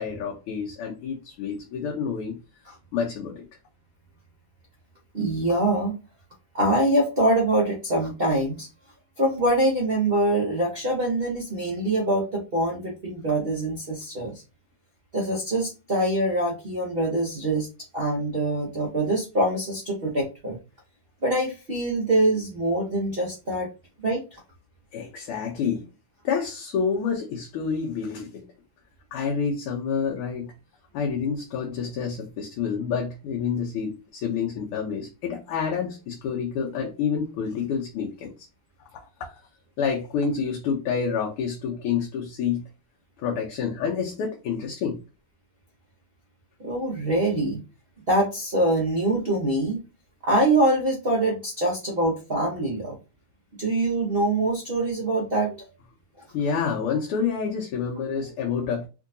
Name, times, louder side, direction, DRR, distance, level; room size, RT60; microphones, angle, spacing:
voice 1, 0.0-2.4 2.9-3.4 24.9-25.8 26.2-28.5 29.1-30.5 30.9-38.3 39.8-42.6 43.2-45.0 56.3-58.9, left 6 dB, 85° left, 0 dB, 1.6 m, -28 dB
voice 2, 5.1-5.9 6.5-8.7 9.2-14.4 15.1-17.7 17.9-20.6 21.2-23.7 24.0-24.2 46.6-47.6 48.1-49.8 50.2-53.0 53.6-55.7, right 1 dB, 60° right, -2 dB, 0.6 m, -24 dB
3.7 x 2.6 x 2.6 m, 0.30 s
omnidirectional pair, 2.4 m